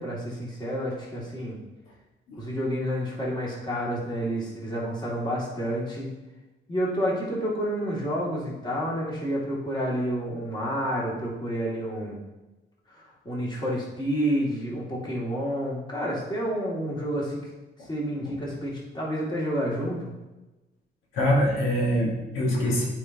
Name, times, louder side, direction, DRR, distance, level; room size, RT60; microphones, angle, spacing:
voice 1, 0.0-1.6 2.4-6.1 6.7-12.2 12.9-17.4 17.8-20.1, equal, 20° left, -5 dB, 2.2 m, -29 dB
voice 2, 21.1-22.8, equal, 85° left, -3 dB, 1.5 m, -24 dB
8.7 x 4.6 x 2.8 m, 1.1 s
cardioid pair, 90°, 20 cm